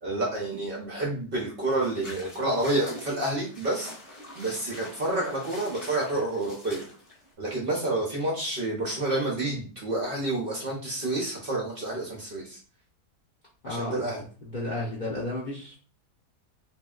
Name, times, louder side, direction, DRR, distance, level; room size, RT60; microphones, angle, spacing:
voice 1, 0.0-3.9 4.4-6.8 7.4-12.6 13.6-14.2, right 2 dB, 60° right, -2 dB, 0.5 m, -29 dB
sound 1, 1.7-7.3, left 1 dB, 30° left, 0.8 m, -45 dB
voice 2, 13.6-14.1 14.5-15.8, left 2 dB, 55° left, -5 dB, 0.5 m, -33 dB
2.9 x 2.6 x 2.3 m, 0.39 s
omnidirectional pair, 1.8 m